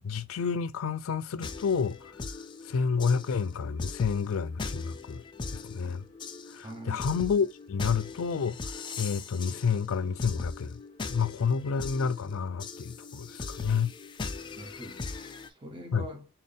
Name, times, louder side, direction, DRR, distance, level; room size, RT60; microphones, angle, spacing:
voice 1, 0.0-2.1 2.6-5.2 5.5-6.0 6.5-8.6 9.0-10.8 11.1-13.9 15.9-16.1, left 6 dB, 90° left, 0.4 m, -29 dB
sound 1, 1.4-15.5, left 4 dB, 20° left, 0.3 m, -40 dB
voice 2, 6.6-7.0 14.6-16.3, equal, 25° right, 0.8 m, -44 dB
4.1 x 2.2 x 3.3 m
head